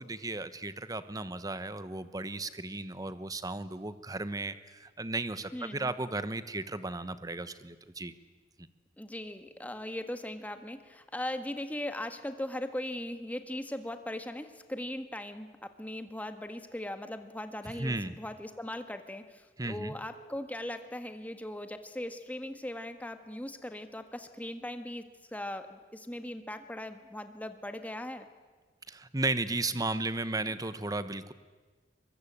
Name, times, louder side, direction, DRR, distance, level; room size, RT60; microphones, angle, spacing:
voice 1, 0.0-8.1 17.7-18.1 19.6-19.9 28.9-31.3, right 2 dB, 20° right, 13 dB, 1.0 m, -35 dB
voice 2, 5.5-5.9 9.0-28.3, left 1 dB, 10° left, 8 dB, 1.6 m, -39 dB
23.5 x 22.5 x 8.7 m, 1.4 s
head